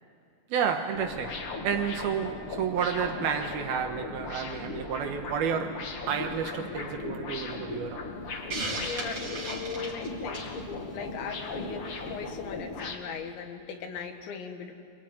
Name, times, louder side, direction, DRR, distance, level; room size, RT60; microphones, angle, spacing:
voice 1, 0.5-8.0, right 7 dB, 70° right, 5 dB, 2.7 m, -31 dB
sound 1, 0.9-13.0, left 3 dB, 50° left, 1.6 m, -38 dB
Hiss, 8.5-10.6, right 2 dB, 35° right, 4.3 m, -35 dB
voice 2, 8.8-14.7, left 6 dB, 80° left, 5 dB, 4.0 m, -39 dB
27.0 x 23.0 x 9.2 m, 2.5 s
omnidirectional pair, 5.2 m